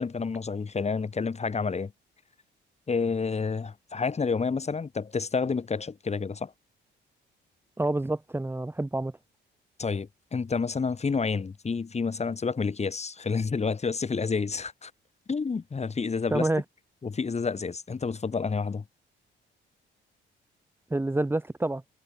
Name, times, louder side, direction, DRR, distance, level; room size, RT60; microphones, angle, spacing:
voice 1, 0.0-1.9 2.9-6.5 9.8-14.9 15.3-16.5 17.0-18.8, left 5 dB, 35° left, 4.5 m, -29 dB
voice 2, 7.8-9.1 16.3-16.6 20.9-21.8, right 2 dB, 10° right, 1.6 m, -27 dB
cardioid pair, 90°, 20 cm